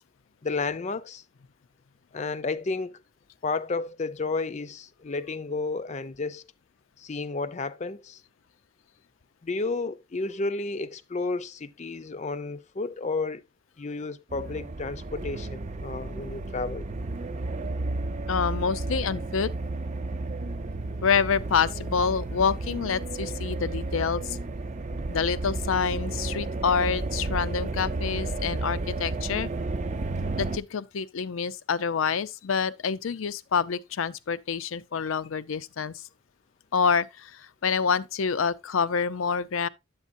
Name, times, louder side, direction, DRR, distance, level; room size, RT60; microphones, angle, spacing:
voice 1, 0.4-1.2 2.1-3.0 3.4-6.4 7.0-8.2 9.4-13.4 13.8-16.8, left 3 dB, 35° left, 0.5 m, -32 dB
sound 1, 14.3-30.6, right 2 dB, 35° right, 0.5 m, -32 dB
voice 2, 18.3-19.5 21.0-24.4 25.1-29.5 30.4-36.0 36.7-39.7, left 6 dB, 85° left, 0.5 m, -27 dB
9.7 x 8.1 x 2.6 m
head